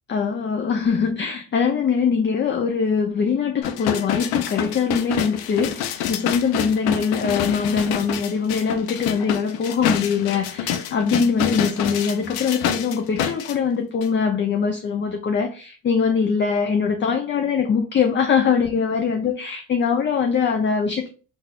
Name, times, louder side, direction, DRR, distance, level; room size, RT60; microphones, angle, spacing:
voice 1, 0.1-21.1, left 6 dB, 30° left, 0.4 m, -22 dB
sound 1, 3.6-13.5 14.0-14.1, left 9 dB, 80° left, 0.5 m, -27 dB
3.9 x 2.4 x 2.3 m
cardioid pair, 90°, 37 cm